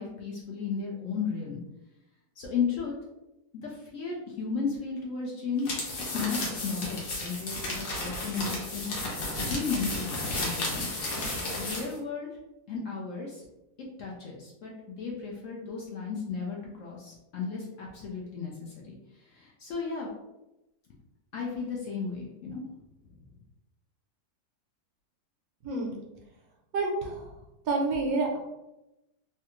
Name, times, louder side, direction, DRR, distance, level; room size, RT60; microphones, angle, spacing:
voice 1, 0.0-1.6 2.4-2.9 3.5-9.1 9.4-12.3 12.7-13.4 14.0-19.0 19.3-20.1 21.3-22.6, left 5 dB, 65° left, -2 dB, 0.8 m, -34 dB
sound 1, 5.6-11.9, left 2 dB, 90° left, 1.4 m, -33 dB
voice 2, 25.6-26.0 26.7-27.3 27.7-28.4, right 3 dB, 70° right, 0 dB, 1.0 m, -28 dB
3.2 x 2.3 x 2.9 m, 0.94 s
omnidirectional pair, 1.7 m